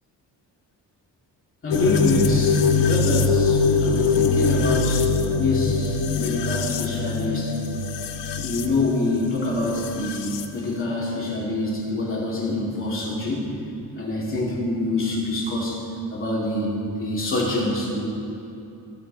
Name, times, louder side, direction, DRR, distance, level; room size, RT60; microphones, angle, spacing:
voice 1, 1.6-5.1 5.4-7.6 8.4-13.5 14.0-15.8 16.1-16.7 17.0-18.1, left 2 dB, 30° left, -5 dB, 2.6 m, -25 dB
sound 1, 1.7-10.5, left 5 dB, 75° left, 0.8 m, -23 dB
17.0 x 7.9 x 4.1 m, 2.8 s
wide cardioid pair, 170°, 43 cm